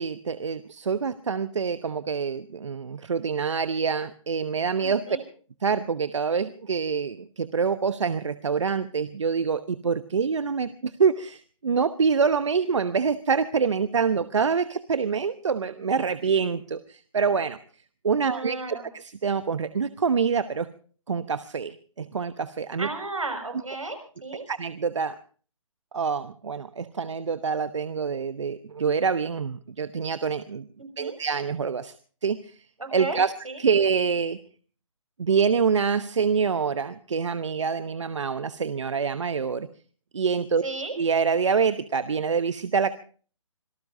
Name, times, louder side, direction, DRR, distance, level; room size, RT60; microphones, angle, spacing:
voice 1, 0.0-5.0 5.6-17.6 18.0-20.7 21.1-22.9 24.5-25.2 25.9-30.7 31.0-31.9 32.2-32.6 32.9-33.3 33.6-34.4 35.2-39.7 40.1-40.6 41.0-42.9, right 6 dB, 65° right, 12 dB, 1.0 m, -26 dB
voice 2, 4.8-5.2 18.2-18.9 22.8-24.4 30.8-31.2 32.8-33.2 33.4-33.6 40.6-40.9, right 3 dB, 85° right, 6 dB, 6.1 m, -34 dB
26.5 x 18.5 x 2.7 m, 0.42 s
figure-of-eight pair, 145°, 17 cm